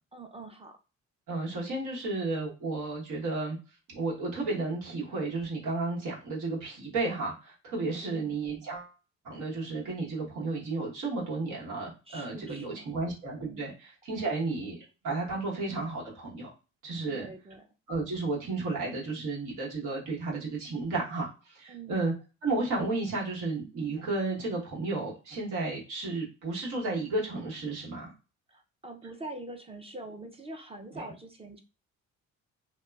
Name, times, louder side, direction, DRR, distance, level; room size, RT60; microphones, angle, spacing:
voice 1, 0.1-0.8 7.7-8.4 12.1-12.9 13.3-13.7 14.2-14.3 17.0-17.7 21.7-22.0 28.5-31.6, right 2 dB, 20° right, 4 dB, 0.4 m, -44 dB
voice 2, 1.3-3.6 3.9-8.9 9.2-14.8 15.0-16.5 16.8-17.3 17.9-22.1 22.4-28.1 30.9-31.1, right 3 dB, 85° right, -3 dB, 1.2 m, -33 dB
2.9 x 2.1 x 2.3 m, 0.32 s
cardioid pair, 90°, 30 cm